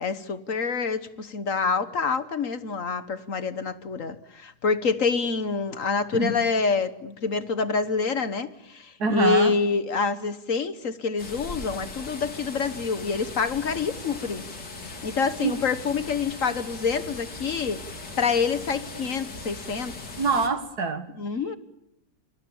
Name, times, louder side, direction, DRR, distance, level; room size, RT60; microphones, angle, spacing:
voice 1, 0.0-14.4 14.9-17.8 18.2-19.9 21.2-21.6, left 5 dB, 55° left, 1.5 m, -27 dB
voice 2, 9.0-9.5 15.4-15.5 20.2-21.0, right 4 dB, 70° right, 2.3 m, -24 dB
sound 1, 11.2-20.5, left 3 dB, 90° left, 3.8 m, -39 dB
28.5 x 27.0 x 7.2 m
omnidirectional pair, 1.7 m